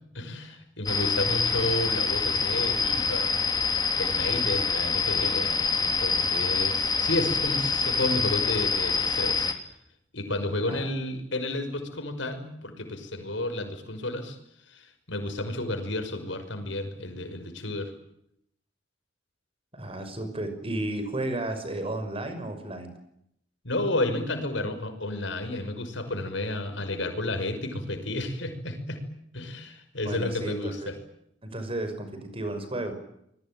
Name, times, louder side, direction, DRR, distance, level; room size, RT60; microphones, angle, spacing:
voice 1, 0.1-3.4 3.9-9.5 10.1-14.4 14.7-17.9 23.6-29.0 29.3-31.0, left 1 dB, 75° left, 8 dB, 5.8 m, -31 dB
sound 1, 0.9-9.5, left 5 dB, 20° left, 3.0 m, -26 dB
voice 2, 19.7-22.9 30.0-30.9 31.4-32.9, right 1 dB, 30° right, 8 dB, 5.9 m, -33 dB
27.5 x 21.0 x 9.0 m, 0.77 s
head